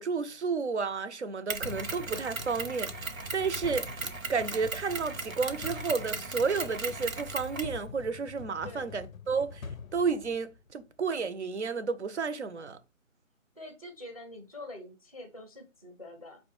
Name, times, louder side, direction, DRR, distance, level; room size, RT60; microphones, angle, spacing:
voice 1, 0.0-3.9 4.3-9.7 9.9-12.8, right 5 dB, 60° right, 0.5 m, -31 dB
Mechanisms, 1.5-7.8, right 4 dB, 80° right, 0.8 m, -37 dB
sound 1, 1.6-10.8, left 5 dB, 85° left, 0.5 m, -45 dB
voice 2, 8.6-9.0 13.6-16.4, left 1 dB, 30° left, 0.5 m, -45 dB
5.0 x 2.1 x 3.0 m
figure-of-eight pair, 155°, 40 cm